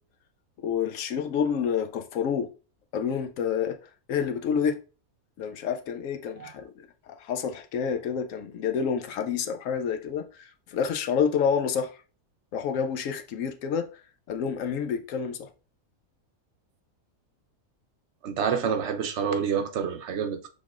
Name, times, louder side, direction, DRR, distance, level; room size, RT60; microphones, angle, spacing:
voice 1, 0.6-2.5 2.9-3.8 4.1-4.8 5.4-6.7 7.1-11.9 12.5-13.9 14.3-15.5, left 7 dB, 70° left, 0.9 m, -28 dB
voice 2, 18.2-20.5, right 7 dB, 65° right, 0.8 m, -28 dB
6.4 x 3.5 x 2.4 m
omnidirectional pair, 1.5 m